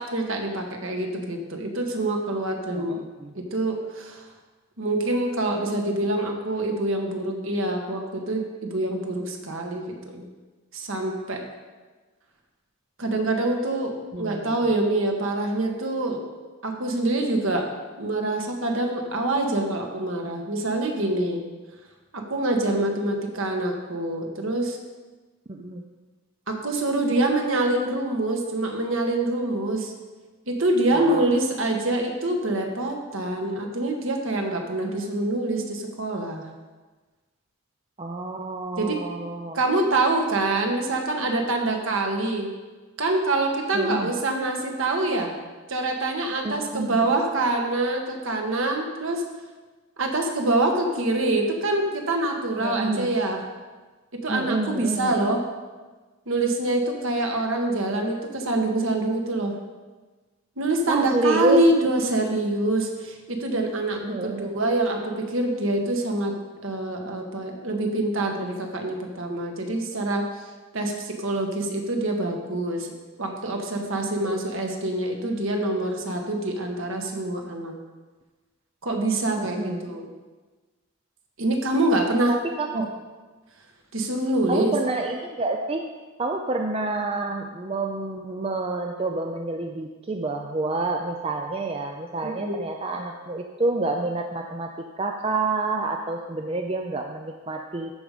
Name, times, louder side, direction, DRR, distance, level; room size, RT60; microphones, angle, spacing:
voice 1, 0.1-3.0 3.3-4.2 4.8-10.3 10.7-11.4 13.0-16.2 16.6-17.7 18.0-21.4 22.1-24.8 26.5-29.9 30.5-36.4 38.8-39.0 39.5-42.5 43.0-45.3 45.7-49.2 50.0-53.4 54.2-55.4 56.3-59.5 60.6-64.0 64.4-66.3 66.6-70.4 70.7-72.9 73.2-77.7 78.8-80.1 81.4-82.4 82.7-82.8 83.9-84.7 92.2-92.6, right 2 dB, 60° right, 2 dB, 1.5 m, -25 dB
voice 2, 2.7-3.3 14.1-14.6 25.5-25.8 30.9-31.3 38.0-39.6 43.7-44.1 46.4-47.1 52.6-53.1 54.3-55.3 60.9-61.6 64.0-64.5 79.4-79.8 82.3-82.9 84.5-85.9 86.2-94.7 95.0-97.9, right 2 dB, 25° right, 3 dB, 0.5 m, -28 dB
13.5 x 5.3 x 5.0 m, 1.3 s
head